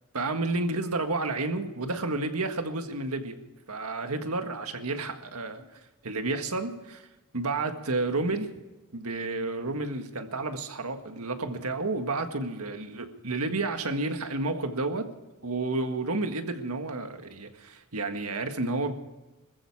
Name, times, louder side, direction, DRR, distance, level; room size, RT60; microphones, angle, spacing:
voice 1, 0.1-3.4 3.7-5.6 6.0-7.1 7.3-8.5 8.9-15.1 15.4-18.9, right 2 dB, 80° right, 7 dB, 1.7 m, -31 dB
20.0 x 15.0 x 4.8 m, 1.1 s
head